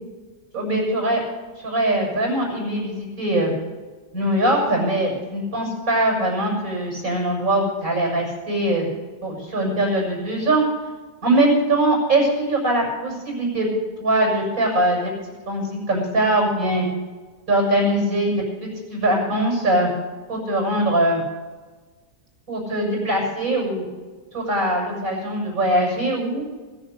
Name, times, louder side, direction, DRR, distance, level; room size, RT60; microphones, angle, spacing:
voice 1, 0.5-1.2 1.6-3.5 4.1-8.9 9.2-10.6 11.2-13.7 14.0-15.1 15.5-16.8 17.5-19.9 20.3-21.2 22.5-23.8 24.3-26.5, right 1 dB, 60° right, -1 dB, 6.8 m, -21 dB
21.5 x 7.3 x 6.7 m, 1.3 s
omnidirectional pair, 1.7 m